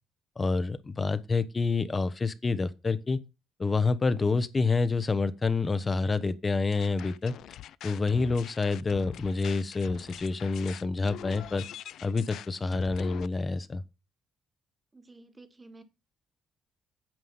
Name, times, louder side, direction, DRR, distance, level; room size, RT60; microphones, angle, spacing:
voice 1, 0.4-3.2 3.6-7.3 7.8-11.6 12.0-13.8, left 3 dB, 30° left, 1.0 m, -28 dB
sound 1, 6.7-13.3, left 11 dB, 75° left, 0.4 m, -43 dB
voice 2, 14.9-15.8, right 2 dB, 20° right, 1.8 m, -52 dB
9.1 x 5.6 x 5.6 m
cardioid pair, 90°, 0 cm